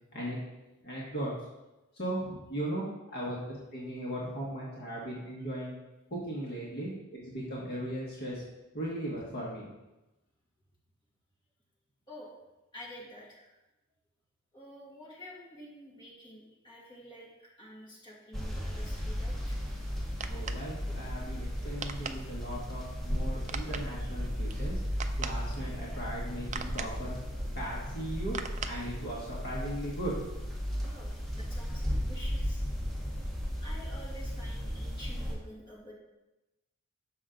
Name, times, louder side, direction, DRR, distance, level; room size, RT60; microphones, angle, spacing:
voice 1, 0.8-1.3 1.9-5.8 6.1-8.4 8.7-9.7 20.3-27.1 27.5-28.4 28.6-30.1, right 1 dB, 50° left, -6 dB, 1.4 m, -38 dB
voice 2, 12.7-13.5 14.5-17.3 17.6-19.6 30.8-32.6 33.6-35.9, equal, 20° left, -6 dB, 2.0 m, -49 dB
sound 1, 18.3-35.3, equal, ahead, 1.1 m, -35 dB
sound 2, 19.8-29.5, right 6 dB, 35° right, 0.3 m, -44 dB
6.4 x 5.6 x 3.8 m, 1.0 s
head